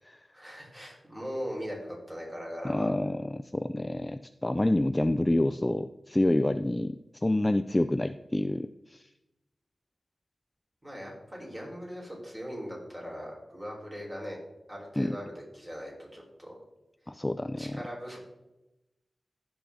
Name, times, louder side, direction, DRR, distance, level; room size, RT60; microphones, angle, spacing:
voice 1, 0.3-2.9 10.8-14.4 14.7-16.6 17.6-18.2, equal, 15° right, -2 dB, 3.6 m, -40 dB
voice 2, 2.6-9.0 15.0-15.2 17.1-17.8, left 1 dB, 15° left, 10 dB, 0.3 m, -28 dB
15.5 x 6.1 x 3.5 m, 0.95 s
wide cardioid pair, 105°, 0 cm